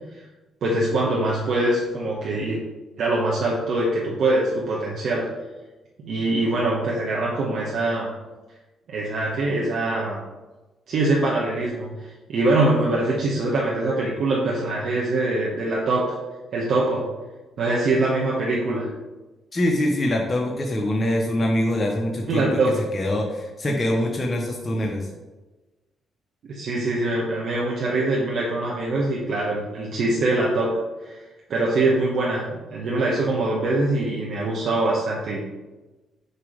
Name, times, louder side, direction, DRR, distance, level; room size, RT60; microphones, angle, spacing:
voice 1, 0.6-2.6 3.0-5.3 6.0-8.1 8.9-10.2 10.9-16.2 16.5-17.1 17.6-18.9 22.3-22.7 26.4-31.2 31.5-35.5, right 2 dB, 65° right, -4 dB, 1.1 m, -23 dB
voice 2, 19.5-25.1, left 1 dB, 25° left, 0 dB, 0.9 m, -24 dB
6.6 x 3.0 x 5.0 m, 1.2 s
cardioid pair, 90°, 0 cm